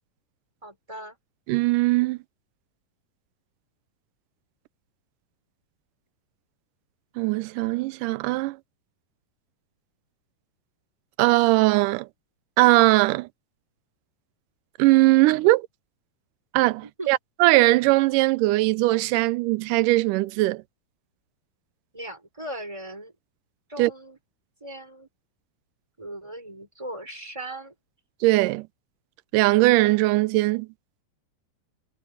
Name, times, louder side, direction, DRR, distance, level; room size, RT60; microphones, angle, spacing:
voice 1, 0.6-1.2 16.8-17.1 21.9-23.1 23.7-24.2 24.6-25.1 26.0-27.7, right 1 dB, 10° right, 3.9 m, -38 dB
voice 2, 1.5-2.2 7.2-8.6 11.2-12.1 12.6-13.3 14.8-15.7 16.5-20.6 23.8-23.9 28.2-28.7 29.3-30.7, right 20 dB, 80° right, 2.0 m, -20 dB
omnidirectional pair, 4.2 m